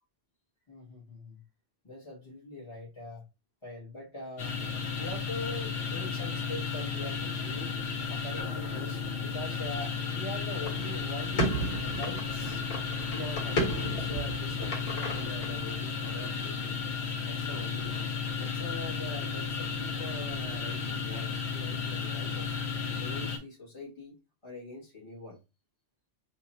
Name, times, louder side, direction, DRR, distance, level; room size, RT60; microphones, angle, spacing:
voice 1, 0.7-1.4 1.8-3.3 3.6-4.5 5.0-7.8 8.1-11.5 11.8-12.6 13.1-16.8 17.3-18.1 18.4-22.6 23.0-24.2 24.4-25.4, left 1 dB, 25° left, -5 dB, 1.1 m, -43 dB
sound 1, 4.4-23.4, left 5 dB, 60° left, 1.2 m, -34 dB
sound 2, 10.5-15.8, right 1 dB, 90° left, 1.8 m, -34 dB
2.9 x 2.9 x 4.1 m, 0.27 s
omnidirectional pair, 1.3 m